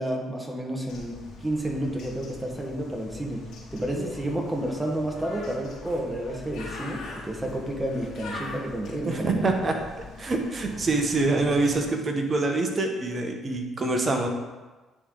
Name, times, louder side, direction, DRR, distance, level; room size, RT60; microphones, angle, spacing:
voice 1, 0.0-3.4 3.7-9.6, right 1 dB, 15° right, 0 dB, 1.4 m, -30 dB
Bird, 0.9-11.9, left 2 dB, 70° left, 1.7 m, -42 dB
voice 2, 9.0-9.7 10.2-14.3, right 3 dB, 40° right, 4 dB, 1.1 m, -25 dB
9.6 x 3.4 x 3.8 m, 1.2 s
supercardioid pair, 60°, 0 cm